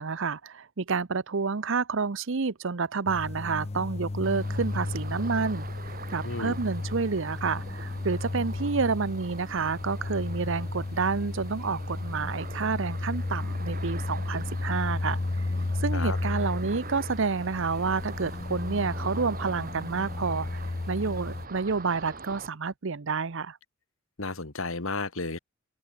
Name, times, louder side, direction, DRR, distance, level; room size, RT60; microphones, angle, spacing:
voice 1, 0.0-5.7 6.1-15.2 15.8-20.6 20.9-23.6, right 4 dB, 60° right, 0.8 m, -29 dB
sound 1, 3.1-21.5, left 2 dB, 30° left, 0.5 m, -33 dB
Ocean, 4.2-22.5, right 3 dB, 40° right, 7.9 m, -44 dB
voice 2, 6.2-6.6 15.9-16.2 24.2-25.4, left 3 dB, 70° left, 2.5 m, -33 dB
open air
head